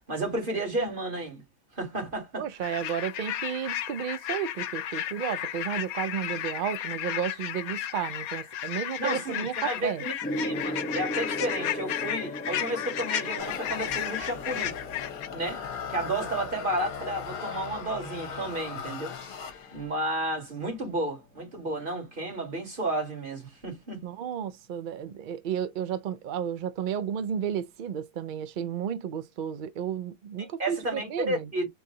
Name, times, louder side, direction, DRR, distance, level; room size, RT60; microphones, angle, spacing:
voice 1, 0.1-1.4 1.8-2.5 9.0-10.1 10.4-14.8 15.3-15.6 15.9-19.1 19.7-24.0 30.4-31.7, right 1 dB, 35° right, 2.3 m, -32 dB
voice 2, 2.4-10.0 24.0-31.5, right 8 dB, 70° right, 0.4 m, -32 dB
sound 1, 2.6-15.3, left 11 dB, 90° left, 1.1 m, -33 dB
Gong, 10.2-20.0 20.9-21.2, left 1 dB, 10° left, 0.8 m, -38 dB
sound 2, 13.4-20.0, left 7 dB, 70° left, 1.3 m, -38 dB
4.7 x 2.7 x 3.8 m
omnidirectional pair, 1.5 m